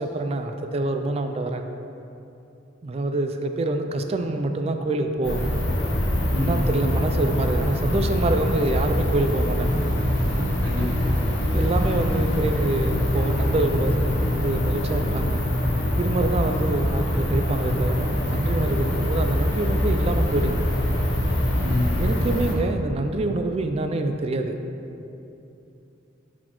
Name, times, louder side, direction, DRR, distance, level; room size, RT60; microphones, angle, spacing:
voice 1, 0.0-1.7 2.8-5.5 6.4-9.8 10.2-10.5 11.5-15.4 16.0-20.7 22.0-24.6, right 2 dB, 35° right, 6 dB, 0.3 m, -26 dB
sound 1, 5.2-22.5, left 1 dB, 65° left, 0.9 m, -24 dB
voice 2, 6.3-6.8 10.6-11.2 21.6-22.1, left 1 dB, 90° right, -3 dB, 1.2 m, -29 dB
8.7 x 4.1 x 3.0 m, 2.8 s
head